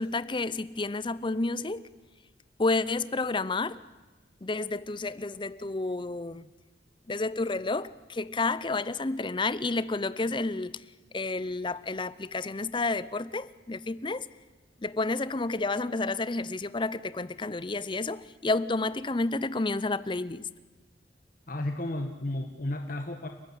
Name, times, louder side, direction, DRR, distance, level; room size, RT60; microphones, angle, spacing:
voice 1, 0.0-1.9 2.6-3.8 4.4-6.5 7.1-10.7 11.1-14.3 14.8-20.5, left 3 dB, 25° left, 0.7 m, -30 dB
voice 2, 21.5-23.3, left 1 dB, 50° left, 1.5 m, -33 dB
30.0 x 14.5 x 10.0 m
head